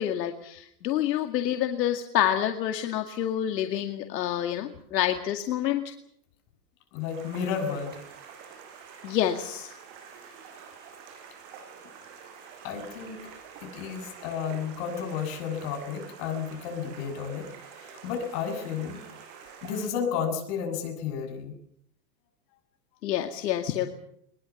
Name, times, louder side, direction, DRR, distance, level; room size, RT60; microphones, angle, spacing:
voice 1, 0.0-5.8 9.0-9.7 23.0-23.9, left 11 dB, 75° left, 5 dB, 2.2 m, -28 dB
voice 2, 6.9-8.0 12.6-13.2 13.6-17.5 17.8-19.0 19.6-21.6, left 7 dB, 45° left, 5 dB, 7.6 m, -32 dB
sound 1, 7.0-19.9, right 6 dB, 50° right, 7.6 m, -47 dB
22.5 x 21.5 x 7.2 m, 0.72 s
supercardioid pair, 140°, 49 cm